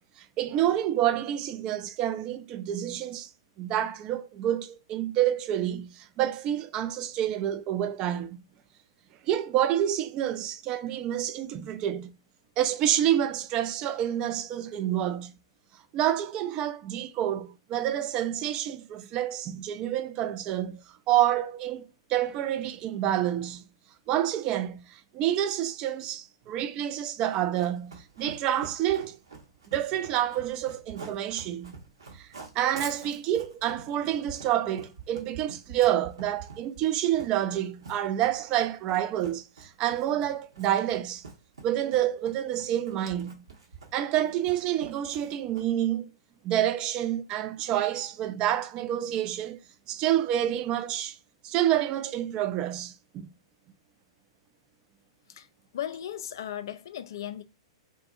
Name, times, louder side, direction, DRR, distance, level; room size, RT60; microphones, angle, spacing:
voice 1, 0.2-3.3 3.6-8.4 9.2-12.1 12.6-15.3 15.9-21.8 22.1-23.6 24.1-29.2 29.7-31.8 32.1-32.3 32.5-41.2 41.6-43.4 43.9-46.1 46.4-49.6 49.9-51.2 51.4-53.3, right 11 dB, 35° right, 0.4 m, -28 dB
Run, 27.2-45.9, right 4 dB, 75° right, 0.9 m, -46 dB
voice 2, 55.7-57.4, left 11 dB, 60° left, 0.3 m, -36 dB
2.6 x 2.6 x 2.3 m
figure-of-eight pair, 105°, 3 cm